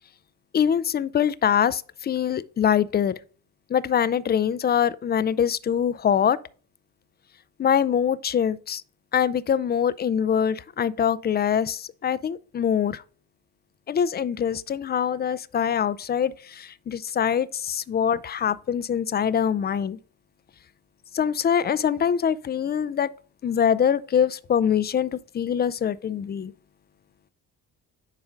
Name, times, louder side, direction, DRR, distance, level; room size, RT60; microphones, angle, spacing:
voice 1, 0.5-3.2 3.7-6.4 7.6-8.8 9.1-13.0 13.9-20.0 21.1-23.1 23.4-26.5, left 8 dB, 25° left, 0.4 m, -24 dB
10.5 x 4.8 x 2.5 m
hypercardioid pair, 45°, 44 cm